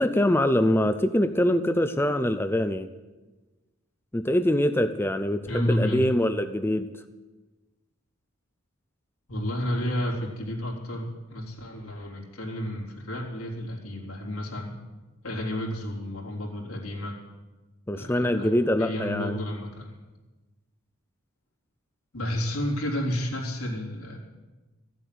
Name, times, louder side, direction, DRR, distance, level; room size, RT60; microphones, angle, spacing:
voice 1, 0.0-2.9 4.1-6.9 17.9-19.4, left 1 dB, 10° left, 10 dB, 0.4 m, -24 dB
voice 2, 5.5-6.0 9.3-14.7 15.2-17.1 17.9-18.5 18.8-19.9 22.1-24.2, left 1 dB, 80° left, -3 dB, 3.6 m, -31 dB
15.0 x 8.0 x 9.3 m, 1.2 s
head